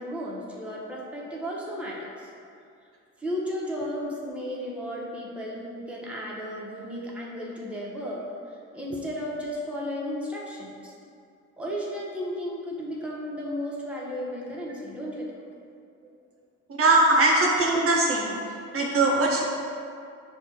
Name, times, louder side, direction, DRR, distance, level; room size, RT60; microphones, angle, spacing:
voice 1, 0.0-2.3 3.2-8.2 8.7-10.9 11.6-15.3, equal, 5° right, -5 dB, 0.8 m, -34 dB
voice 2, 16.8-18.4 18.7-19.4, right 2 dB, 50° right, -2 dB, 0.6 m, -21 dB
6.4 x 2.3 x 2.9 m, 2.4 s
cardioid pair, 90°, 30 cm